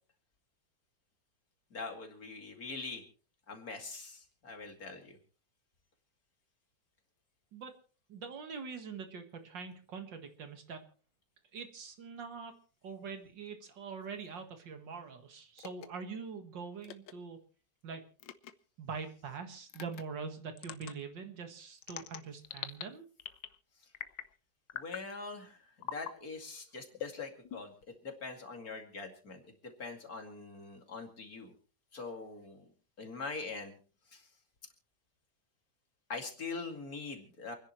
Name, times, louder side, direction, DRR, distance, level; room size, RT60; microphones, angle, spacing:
voice 1, 1.7-3.0 3.5-5.2 24.7-31.5 31.9-32.7 33.0-33.8 34.1-34.3 36.1-37.5, left 4 dB, 50° left, 4 dB, 2.8 m, -43 dB
voice 2, 8.1-10.8 11.5-12.5 12.8-17.4 17.8-18.0 18.8-23.0, right 5 dB, 80° right, 6 dB, 2.4 m, -44 dB
sound 1, 15.6-15.9 16.8-17.1 18.2-18.5 19.7-20.0 20.6-20.9 21.8-22.8 23.2-23.6 23.9-24.3 24.7-25.1 25.8-26.1 26.9-27.8, left 10 dB, 80° left, 1.5 m, -43 dB
28.5 x 10.5 x 3.1 m, 0.40 s
omnidirectional pair, 2.0 m